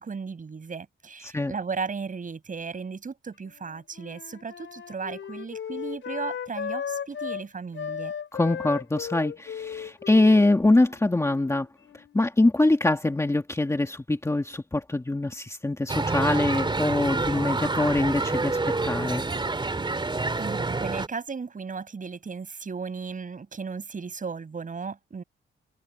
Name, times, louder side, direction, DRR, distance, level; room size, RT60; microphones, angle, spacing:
voice 1, 0.0-8.1 20.4-25.2, right 5 dB, 40° right, 7.2 m, -35 dB
Wind instrument woodwind instrument, 3.4-7.4 7.7-12.2, left 8 dB, 70° left, 4.5 m, -36 dB
voice 2, 8.3-11.7 12.1-18.6 18.8-19.2, left 2 dB, 15° left, 2.1 m, -23 dB
sound 1, 15.9-21.1, right 3 dB, 20° right, 3.1 m, -28 dB
wide cardioid pair, 125°, 21 cm